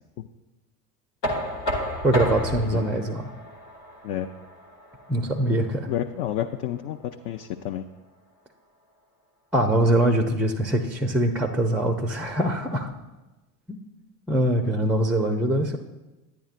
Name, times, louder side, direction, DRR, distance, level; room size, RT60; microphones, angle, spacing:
Knock, 1.2-7.0, left 1 dB, 85° left, 1.2 m, -33 dB
voice 1, 2.0-3.3 5.1-5.9 9.5-12.9 13.7-13.8 14.3-15.8, right 1 dB, 5° right, 6 dB, 0.4 m, -23 dB
voice 2, 5.9-7.0 7.2-7.8, left 11 dB, 55° left, 6 dB, 0.5 m, -29 dB
10.0 x 9.2 x 2.5 m, 1.1 s
hypercardioid pair, 75°, 48 cm